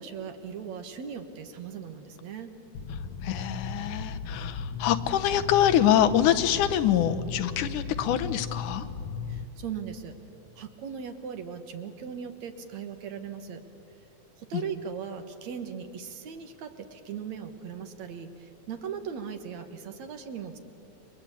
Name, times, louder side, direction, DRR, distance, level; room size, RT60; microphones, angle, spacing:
voice 1, 0.0-2.5 9.3-10.2 10.6-13.6 14.4-20.6, right 7 dB, 65° right, 7 dB, 2.7 m, -38 dB
sound 1, 2.7-9.4, left 5 dB, 65° left, 1.5 m, -36 dB
voice 2, 3.2-8.9 14.5-14.6, left 10 dB, 90° left, 10 dB, 2.5 m, -25 dB
29.5 x 23.5 x 8.6 m, 2.7 s
omnidirectional pair, 3.5 m